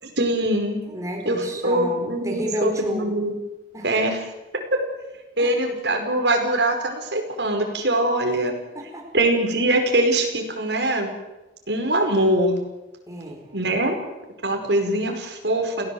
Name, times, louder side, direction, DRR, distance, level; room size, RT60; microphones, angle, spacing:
voice 1, 0.0-0.8 1.2-3.3 3.8-4.2 4.5-4.8 5.4-8.5 9.1-11.1 11.7-12.5 13.5-14.0 14.4-15.9, right 1 dB, 80° right, 3 dB, 5.0 m, -22 dB
voice 2, 0.9-3.1 3.7-3.9 5.4-5.6 8.7-9.1 13.1-13.4, equal, 20° right, 1 dB, 4.3 m, -30 dB
29.5 x 17.0 x 7.9 m, 1.0 s
head